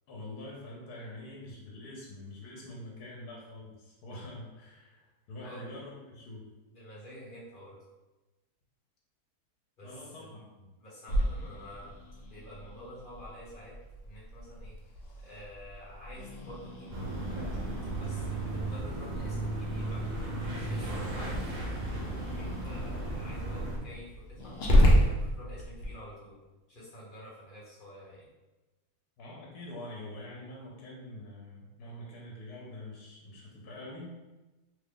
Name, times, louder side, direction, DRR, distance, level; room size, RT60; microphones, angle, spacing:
voice 1, 0.1-6.5 9.8-10.7 29.2-34.2, left 1 dB, 80° left, -4 dB, 1.2 m, -45 dB
voice 2, 6.7-7.8 9.8-10.3 10.8-11.9 12.2-13.7 14.0-14.8 15.2-21.7 22.3-26.4 26.7-28.3, equal, 35° left, -8 dB, 1.3 m, -49 dB
Growling, 11.1-25.9, equal, 60° left, 0.7 m, -32 dB
sound 1, 16.9-23.8, right 2 dB, 60° right, 0.4 m, -35 dB
3.0 x 2.4 x 3.5 m, 1.1 s
omnidirectional pair, 1.6 m